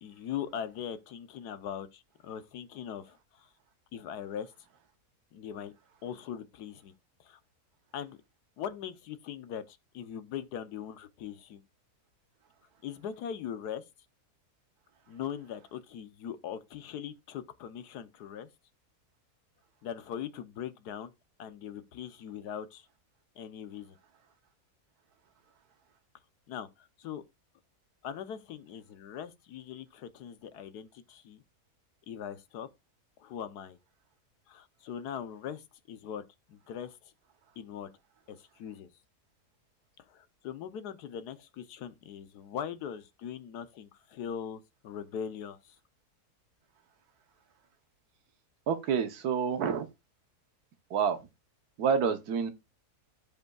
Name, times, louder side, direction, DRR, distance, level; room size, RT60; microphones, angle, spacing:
voice 1, 0.0-3.5 3.9-4.5 5.3-5.7 6.0-6.9 7.2-7.4 7.9-8.2 8.6-11.6 12.8-13.8 15.1-18.5 19.8-21.1 21.4-22.9 23.4-24.0 26.5-27.2 28.0-31.4 32.1-32.7 33.2-33.8 34.5-37.0 37.6-37.9 38.3-38.9 40.0-45.8, left 8 dB, 85° left, 1.4 m, -41 dB
voice 2, 48.7-49.9 50.9-51.2 51.8-52.5, right 7 dB, 75° right, 1.4 m, -28 dB
14.5 x 5.3 x 2.3 m
omnidirectional pair, 1.7 m